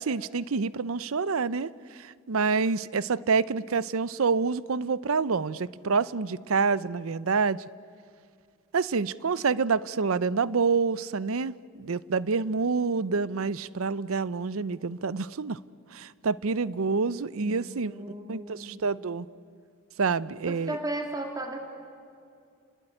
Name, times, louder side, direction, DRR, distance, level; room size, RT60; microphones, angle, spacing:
voice 1, 0.0-1.7 2.3-7.6 8.7-15.6 15.9-17.9 18.3-19.3 20.0-20.8, right 4 dB, 80° right, 19 dB, 0.6 m, -27 dB
voice 2, 17.4-18.8 20.4-21.6, right 1 dB, 15° right, 3 dB, 2.6 m, -36 dB
29.5 x 19.5 x 10.0 m, 2.3 s
head